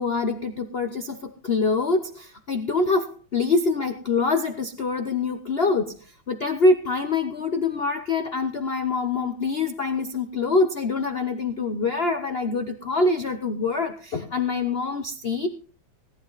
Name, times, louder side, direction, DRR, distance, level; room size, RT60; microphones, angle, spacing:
voice 1, 0.0-15.5, left 3 dB, 55° left, 8 dB, 0.6 m, -25 dB
18.0 x 11.5 x 4.0 m, 0.36 s
omnidirectional pair, 2.4 m